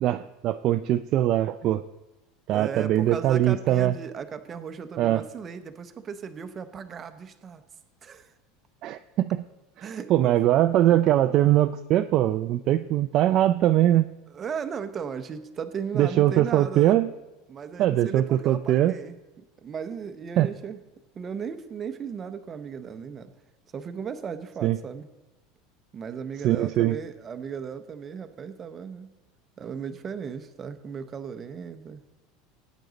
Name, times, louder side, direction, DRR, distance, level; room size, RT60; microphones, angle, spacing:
voice 1, 0.0-1.8 2.5-3.9 5.0-5.2 8.8-9.4 9.8-14.1 15.9-17.1 17.8-18.9 20.4-20.5 24.6-24.8 26.4-27.0, right 13 dB, 40° right, 9 dB, 0.3 m, -22 dB
voice 2, 2.5-7.6 8.0-8.3 9.8-10.4 14.3-17.0 17.5-20.8 21.1-23.3 23.7-25.1 25.9-29.1 29.6-32.0, right 6 dB, 20° right, 9 dB, 0.8 m, -36 dB
18.5 x 9.1 x 4.0 m, 1.1 s
supercardioid pair, 165°, 0 cm